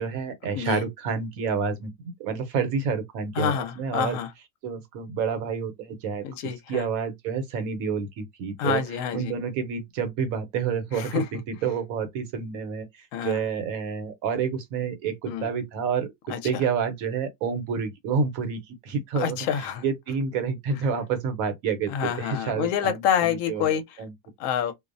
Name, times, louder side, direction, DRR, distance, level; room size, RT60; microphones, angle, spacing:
voice 1, 0.0-4.2 4.6-8.8 9.1-19.4 19.8-24.1, right 6 dB, 75° right, 1.1 m, -29 dB
voice 2, 3.3-4.3 6.2-6.9 8.6-9.3 10.9-11.3 13.1-13.4 15.3-15.5 16.3-16.6 19.1-19.8 21.9-23.8 24.4-24.7, left 8 dB, 70° left, 0.9 m, -27 dB
2.5 x 2.0 x 2.5 m
omnidirectional pair, 1.5 m